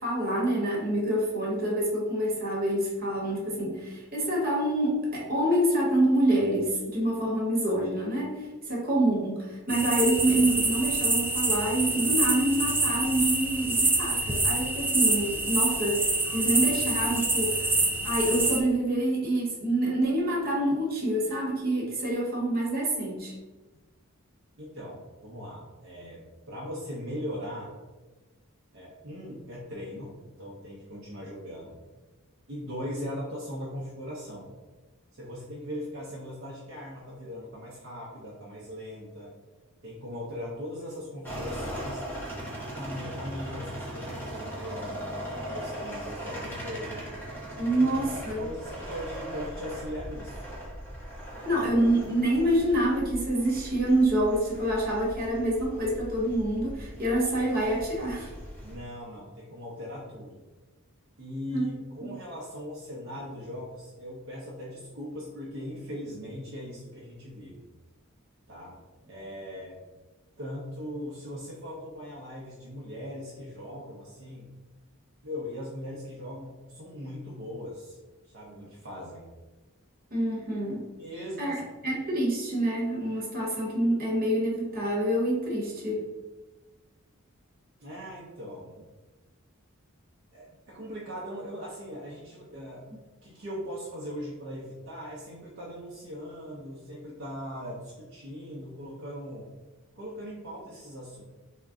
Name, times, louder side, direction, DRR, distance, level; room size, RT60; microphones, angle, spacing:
voice 1, 0.0-23.3 47.6-48.5 51.4-58.3 61.5-61.6 62.0-62.1 80.1-80.9 81.4-81.6 81.8-86.0, right 1 dB, 45° right, -3 dB, 1.1 m, -27 dB
sound 1, 9.7-18.6, right 2 dB, 10° right, 0.3 m, -26 dB
voice 2, 24.6-27.7 28.7-31.8 32.5-34.6 35.1-39.3 39.8-42.0 42.6-47.1 47.7-50.5 51.3-51.7 58.6-60.4 61.2-67.7 68.5-68.7 69.1-69.8 70.4-74.5 75.2-78.0 78.2-79.3 81.0-81.6 81.9-82.0 87.8-88.9 90.3-92.8 93.2-99.5 100.0-101.2, equal, 65° right, -5 dB, 0.7 m, -39 dB
sound 2, 41.2-58.8, equal, 10° left, 0.9 m, -39 dB
3.6 x 2.2 x 3.5 m, 1.2 s
head